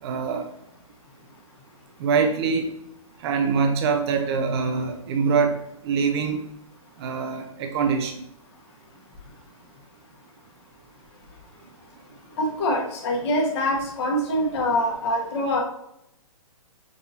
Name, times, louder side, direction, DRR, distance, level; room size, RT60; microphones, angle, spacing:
voice 1, 0.0-0.4 2.0-2.7 3.2-5.5 5.8-6.4 7.0-8.1, right 5 dB, 45° right, 5 dB, 0.6 m, -24 dB
voice 2, 12.4-15.6, left 1 dB, 50° left, 0 dB, 1.2 m, -24 dB
6.2 x 2.6 x 2.8 m, 0.77 s
hypercardioid pair, 140°, 18 cm